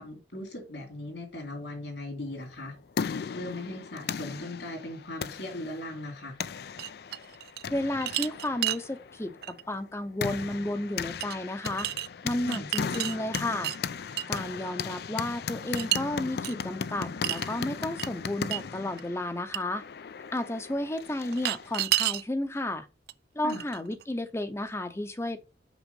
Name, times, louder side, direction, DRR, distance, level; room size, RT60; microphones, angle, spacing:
voice 1, 0.0-2.7 3.3-6.4 12.4-12.7 23.4-23.6, left 1 dB, 80° left, 2.7 m, -38 dB
sound 1, 2.5-21.7, left 6 dB, 65° left, 0.4 m, -37 dB
sound 2, 6.8-7.7 8.0-8.8 9.4-9.6 11.2-11.4 11.6-12.1 12.5-13.8 14.2-14.4 15.8-16.0 16.4-16.5 17.2-17.5 18.0-18.1 18.5-18.6 19.0-19.1 19.5-19.6 21.3-22.2 23.1-23.2 23.5-24.0, right 14 dB, 60° right, 0.3 m, -30 dB
voice 2, 7.7-11.9 12.2-13.7 14.3-19.8 20.3-22.9 23.3-25.4, left 1 dB, 15° left, 0.7 m, -32 dB
6.1 x 4.9 x 5.3 m
head